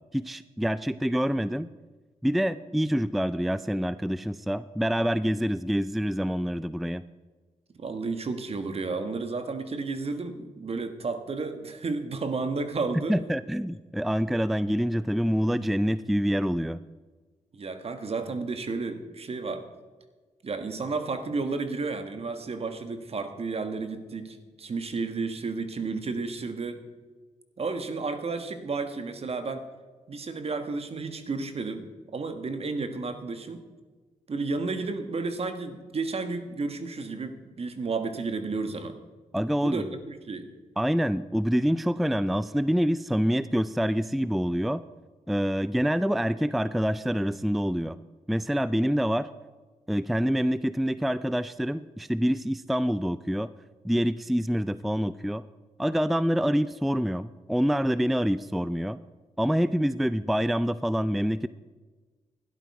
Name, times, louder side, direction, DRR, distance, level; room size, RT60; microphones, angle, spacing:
voice 1, 0.1-1.7 2.2-7.0 13.1-16.8 39.3-39.8 40.8-44.8 45.3-48.0 48.3-49.3 49.9-53.5 53.8-55.4 55.8-59.0 59.4-61.5, equal, ahead, 16 dB, 0.4 m, -26 dB
voice 2, 7.7-13.2 17.5-19.6 20.4-26.8 27.6-29.7 30.1-33.6 34.3-39.0 39.6-40.5, right 4 dB, 50° right, 8 dB, 1.5 m, -32 dB
12.5 x 11.0 x 4.7 m, 1.3 s
supercardioid pair, 50°, 13 cm